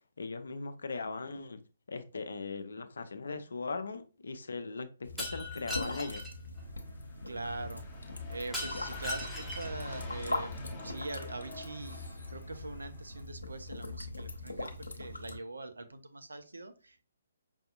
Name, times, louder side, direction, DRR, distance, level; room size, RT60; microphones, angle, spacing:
voice 1, 0.2-1.6 1.9-6.2, left 3 dB, 65° left, 9 dB, 0.6 m, -39 dB
sound 1, 5.0-15.4, left 2 dB, 80° left, 0.9 m, -41 dB
Shatter, 5.2-6.3 8.5-9.8, left 1 dB, ahead, 0.8 m, -39 dB
sound 2, 6.6-13.2, equal, 15° left, 1.0 m, -47 dB
voice 2, 7.3-7.8 8.3-10.5 10.8-17.0, right 2 dB, 70° right, 8 dB, 0.6 m, -43 dB
5.5 x 2.6 x 2.4 m, 0.35 s
figure-of-eight pair, 130°, 0 cm